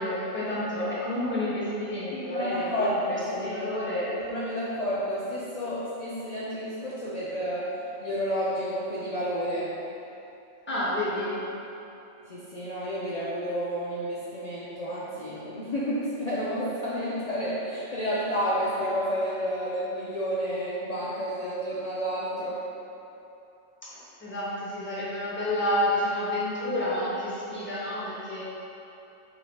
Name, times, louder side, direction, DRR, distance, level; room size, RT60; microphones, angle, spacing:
voice 1, 0.0-4.1 10.7-11.4 23.9-28.4, left 1 dB, 10° left, -9 dB, 0.7 m, -29 dB
voice 2, 2.1-3.6 4.2-7.7 8.0-9.7 12.2-22.6, equal, 80° left, -9 dB, 0.3 m, -30 dB
3.0 x 3.0 x 4.2 m, 2.9 s
omnidirectional pair, 1.4 m